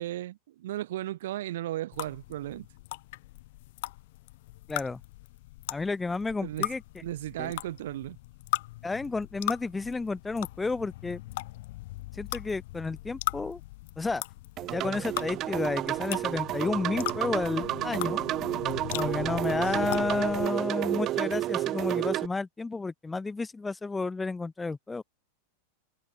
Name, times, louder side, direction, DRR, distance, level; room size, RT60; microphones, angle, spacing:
voice 1, 0.0-2.7 6.4-6.7 7.0-8.2 19.7-20.1, right 14 dB, 55° right, 3.6 m, -35 dB
sound 1, 1.9-20.5, left 19 dB, 50° left, 2.0 m, -39 dB
voice 2, 4.7-5.0 5.7-6.8 7.4-7.5 8.8-11.2 12.2-13.6 14.0-14.2 14.7-18.2 18.9-25.0, left 3 dB, 10° left, 1.0 m, -31 dB
sound 2, 14.6-22.3, right 14 dB, 35° right, 0.6 m, -31 dB
figure-of-eight pair, 90°, 0 cm